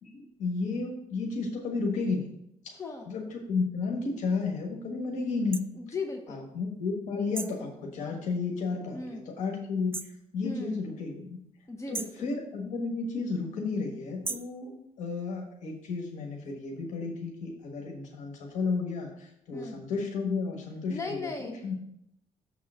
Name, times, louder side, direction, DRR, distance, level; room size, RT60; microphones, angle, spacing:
voice 1, 0.0-2.3 2.6-2.8 3.1-5.6 6.3-11.4 11.9-21.7, left 4 dB, 90° left, 1 dB, 1.3 m, -33 dB
voice 2, 2.7-3.1 5.7-6.5 8.9-9.2 10.4-10.8 11.7-12.3 19.5-19.8 20.9-21.7, left 3 dB, 25° left, 3 dB, 0.7 m, -37 dB
sound 1, 5.5-5.7 7.4-7.6 9.9-10.2 11.9-12.2 14.2-14.6, right 4 dB, 20° right, 0.3 m, -36 dB
7.1 x 3.7 x 6.1 m, 0.75 s
cardioid pair, 110°, 12 cm